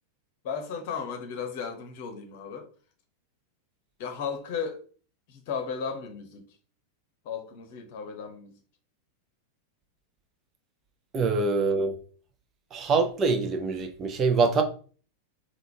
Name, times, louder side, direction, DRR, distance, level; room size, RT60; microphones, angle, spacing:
voice 1, 0.4-2.7 4.0-4.8 5.3-6.5 7.2-8.6 11.2-11.5, left 6 dB, 50° left, 1.0 m, -35 dB
voice 2, 11.1-11.9 12.7-14.6, right 4 dB, 25° right, 0.7 m, -24 dB
3.7 x 2.5 x 4.6 m
figure-of-eight pair, 90°, 0 cm